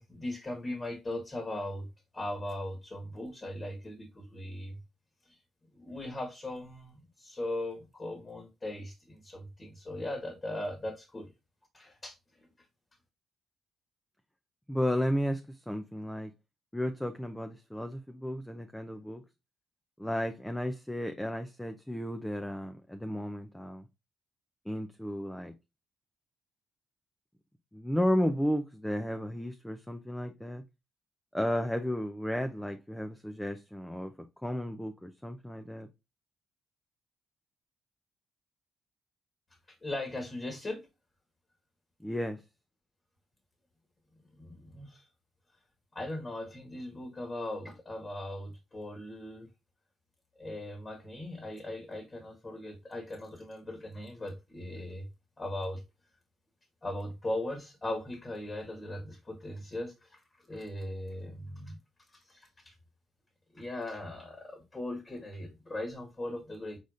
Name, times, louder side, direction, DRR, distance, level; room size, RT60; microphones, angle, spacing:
voice 1, 0.0-4.8 5.3-5.4 5.7-11.3 11.7-12.5 39.8-40.9 44.4-45.1 45.9-49.5 50.4-55.1 55.4-55.8 56.8-61.8 62.3-62.7 63.5-66.8, left 1 dB, 25° left, 1.5 m, -39 dB
voice 2, 14.7-16.3 16.7-19.2 20.0-23.8 24.7-25.5 27.7-30.6 31.3-34.1 34.4-35.9 42.0-42.4, equal, 5° left, 0.6 m, -33 dB
4.9 x 4.1 x 2.5 m
cardioid pair, 90°, 0 cm